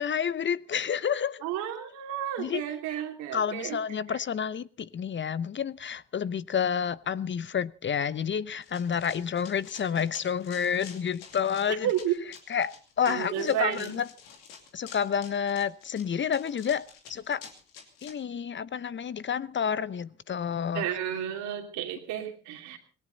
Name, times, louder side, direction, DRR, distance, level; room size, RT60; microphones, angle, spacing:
voice 1, 0.0-1.4 2.4-2.6 3.3-11.9 12.5-14.1 14.7-17.4 18.0-20.8, left 7 dB, 40° left, 0.8 m, -29 dB
voice 2, 1.4-3.8 4.1-4.2 11.8-12.2 13.0-14.0 20.7-22.8, right 11 dB, 75° right, 2.9 m, -32 dB
Run, 8.6-18.1, left 7 dB, 85° left, 2.6 m, -49 dB
18.5 x 17.5 x 4.1 m
hypercardioid pair, 50°, 29 cm